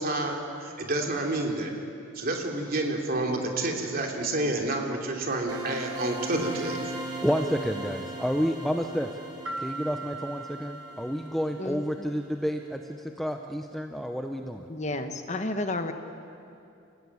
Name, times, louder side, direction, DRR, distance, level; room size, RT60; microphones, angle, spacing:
voice 1, 0.0-1.7 2.1-6.8, right 2 dB, 45° right, 1 dB, 3.2 m, -29 dB
sound 1, 5.5-12.2, right 2 dB, 20° right, 3.0 m, -39 dB
voice 2, 7.2-9.1 9.6-12.8 13.2-14.7, equal, ahead, 4 dB, 0.8 m, -29 dB
sound 2, 9.5-12.1, right 2 dB, 75° right, 1.6 m, -40 dB
voice 3, 11.6-12.1 14.7-15.9, left 2 dB, 35° left, 7 dB, 1.2 m, -32 dB
29.5 x 16.5 x 9.7 m, 2.6 s
head